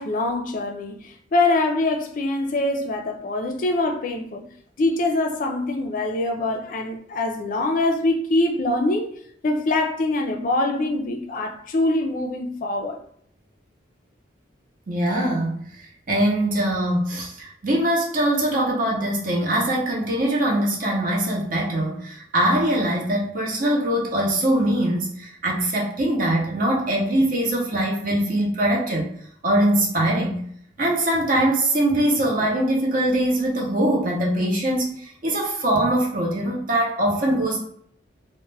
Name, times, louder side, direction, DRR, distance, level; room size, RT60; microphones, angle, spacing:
voice 1, 0.0-4.4 4.8-9.1 9.4-13.0, left 2 dB, 45° left, 0.3 m, -24 dB
voice 2, 14.9-15.6 16.1-29.1 29.4-30.4 30.8-37.6, right 1 dB, 45° right, 0.6 m, -22 dB
2.2 x 2.0 x 3.2 m
head